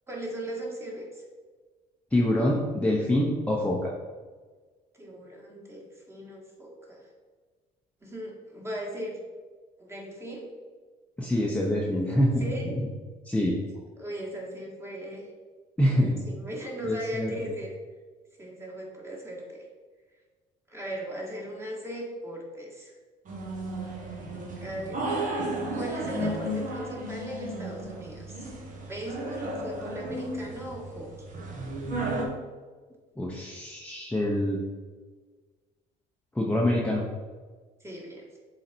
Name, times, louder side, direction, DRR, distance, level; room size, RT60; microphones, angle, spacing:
voice 1, 0.1-1.2 4.9-7.1 8.0-9.2 9.8-10.5 12.4-12.7 14.0-15.3 16.3-17.7 18.4-19.7 20.7-23.0 24.6-25.0 25.7-28.5 28.9-31.1 37.8-38.3, right 1 dB, 15° right, -1 dB, 1.8 m, -38 dB
voice 2, 2.1-3.9 11.2-12.9 13.2-13.6 15.8-16.1 16.8-17.3 33.2-34.6 36.3-37.0, left 1 dB, 10° left, -3 dB, 0.9 m, -25 dB
sound 1, 23.3-32.2, right 1 dB, 50° right, 1.6 m, -34 dB
7.3 x 4.0 x 4.5 m, 1.4 s
cardioid pair, 110°, 17 cm